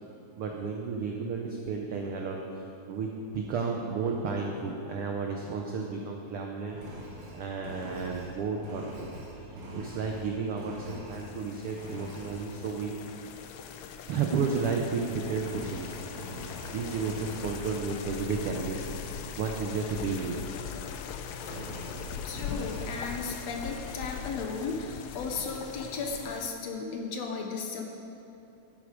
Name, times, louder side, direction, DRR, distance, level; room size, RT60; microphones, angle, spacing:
voice 1, 0.4-2.4 2.9-3.1 3.3-6.8 7.3-9.1 9.5-12.9 14.1-16.0 16.7-18.9 19.4-20.5, right 5 dB, 85° right, 1 dB, 1.2 m, -32 dB
Engine, 6.7-11.4 11.8-12.5 15.3-17.6 21.4-23.0, equal, 50° right, 2.3 m, -43 dB
sound 1, 11.1-26.5, left 7 dB, 85° left, 1.4 m, -41 dB
voice 2, 22.1-27.8, left 4 dB, 70° left, 2 dB, 1.8 m, -35 dB
11.0 x 9.5 x 5.1 m, 2.7 s
omnidirectional pair, 3.5 m